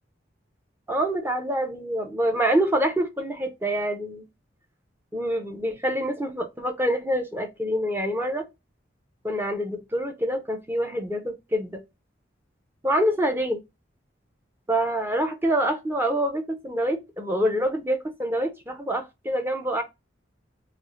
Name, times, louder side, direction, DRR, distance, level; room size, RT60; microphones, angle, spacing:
voice 1, 0.9-4.2 5.1-8.5 9.2-11.8 12.8-13.6 14.7-19.8, equal, 10° right, 0.4 m, -26 dB
3.0 x 2.3 x 2.4 m
head